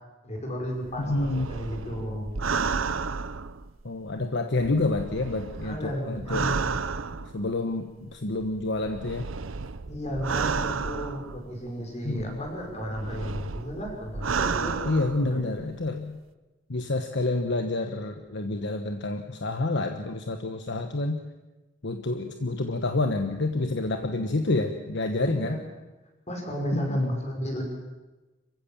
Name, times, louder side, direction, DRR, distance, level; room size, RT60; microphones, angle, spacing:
voice 1, 0.2-2.4 5.6-6.7 9.9-14.8 15.1-15.6 25.2-25.6 26.3-27.6, equal, 35° left, 1 dB, 5.9 m, -33 dB
sound 1, 0.8-4.1 4.6-7.6 8.4-11.6 12.2-15.6 15.9-16.0, right 5 dB, 80° right, 0.8 m, -32 dB
voice 2, 1.0-1.5 3.8-6.5 7.3-9.3 12.0-12.4 14.8-16.2 16.7-21.2 21.8-25.6 26.7-27.2, left 2 dB, 65° left, 6 dB, 1.2 m, -28 dB
26.5 x 15.5 x 7.4 m, 1.1 s
head